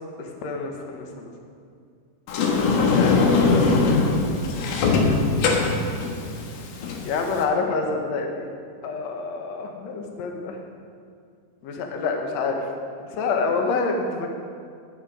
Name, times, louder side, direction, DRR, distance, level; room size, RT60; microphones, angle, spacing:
voice 1, 0.2-1.3 2.9-5.5 7.1-8.5 8.8-10.6 11.6-12.6 13.1-14.3, left 4 dB, 60° left, 2 dB, 2.1 m, -28 dB
Sliding door, 2.3-7.4, left 4 dB, 90° left, 3.0 m, -21 dB
12.0 x 10.5 x 5.1 m, 2.3 s
omnidirectional pair, 4.0 m